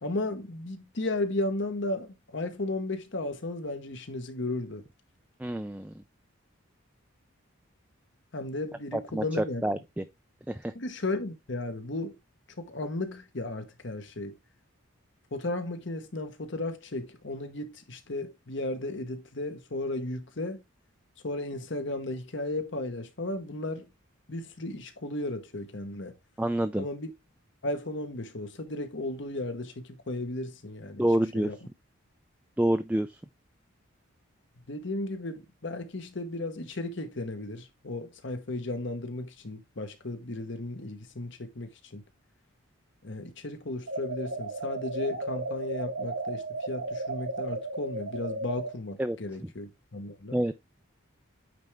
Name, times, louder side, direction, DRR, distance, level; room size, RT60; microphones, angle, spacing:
voice 1, 0.0-4.8 8.3-9.6 10.7-12.2 12.6-14.3 15.3-20.6 21.2-23.9 24.3-26.1 26.7-27.1 27.6-31.1 31.3-31.6 34.7-42.0 43.0-50.4, left 2 dB, 55° left, 1.1 m, -35 dB
voice 2, 5.4-5.9 8.9-10.0 10.5-10.7 26.4-26.9 31.0-31.5 32.6-33.2 49.0-49.2 50.3-50.5, right 1 dB, 5° right, 0.3 m, -28 dB
sound 1, 43.9-48.7, right 2 dB, 65° right, 1.3 m, -34 dB
9.1 x 3.4 x 3.4 m
head